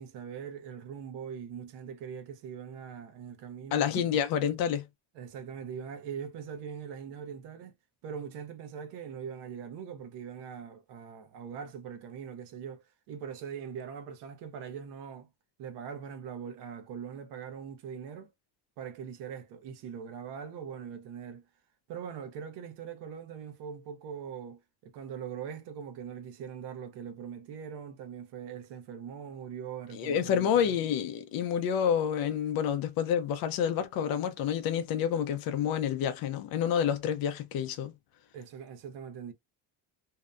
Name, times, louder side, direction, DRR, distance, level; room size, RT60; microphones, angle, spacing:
voice 1, 0.0-4.2 5.1-7.7 8.0-15.3 15.6-18.3 18.8-21.5 21.9-30.7 38.3-39.3, right 7 dB, 70° right, 0.7 m, -42 dB
voice 2, 3.7-4.9 29.9-37.9, left 8 dB, 55° left, 0.5 m, -28 dB
2.7 x 2.1 x 2.3 m
cardioid pair, 170°, 43 cm